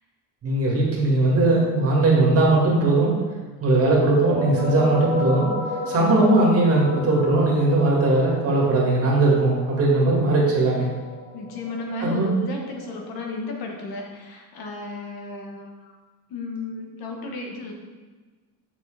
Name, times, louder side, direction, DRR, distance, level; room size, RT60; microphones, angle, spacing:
voice 1, 0.4-3.2 3.6-5.5 5.9-10.9 12.0-12.3, right 2 dB, 35° right, -3 dB, 1.9 m, -19 dB
sound 1, 4.2-13.3, left 2 dB, 85° left, 2.4 m, -33 dB
voice 2, 11.3-15.9 16.3-17.7, left 2 dB, 60° left, 1 dB, 1.3 m, -33 dB
7.2 x 6.6 x 3.4 m, 1.4 s
cardioid pair, 180°, 40 cm